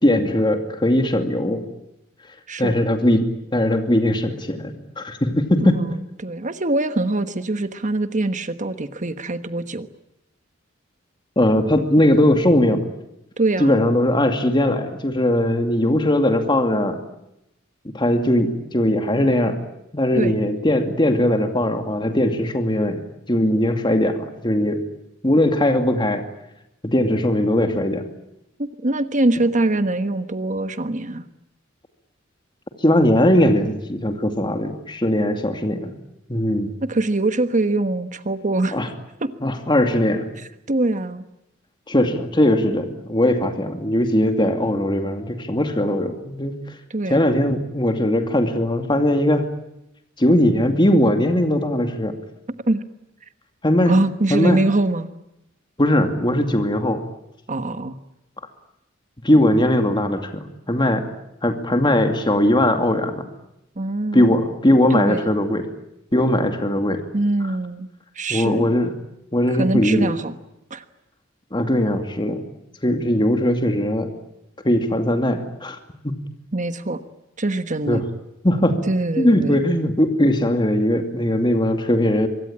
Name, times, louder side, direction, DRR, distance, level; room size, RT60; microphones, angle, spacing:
voice 1, 0.0-1.6 2.6-3.3 3.5-5.8 11.4-12.8 13.6-17.0 17.9-19.6 19.9-23.0 23.3-24.8 25.2-26.3 26.8-28.0 32.8-35.9 36.3-36.7 38.7-38.9 39.4-40.3 41.9-46.7 47.1-49.5 50.2-52.1 53.6-53.9 54.3-54.6 55.8-57.0 59.2-61.1 61.4-63.2 64.1-65.6 66.1-67.0 68.3-68.9 69.3-70.1 71.5-72.4 72.8-74.1 74.6-75.8 76.0-76.1 77.9-78.0 78.4-78.8 79.2-82.3, left 1 dB, 25° left, 6 dB, 2.4 m, -19 dB
voice 2, 2.5-2.8 5.6-9.9 13.4-13.8 20.1-20.3 28.6-31.2 36.8-38.8 39.2-39.3 40.7-41.3 46.9-47.4 52.7-52.8 53.9-55.1 57.5-58.0 63.8-64.3 64.9-65.3 67.1-67.9 68.1-68.7 69.5-70.3 70.7-70.8 76.5-77.0 77.4-78.0 78.9-79.6, right 2 dB, 40° right, 10 dB, 1.3 m, -23 dB
25.5 x 23.0 x 8.7 m, 0.86 s
head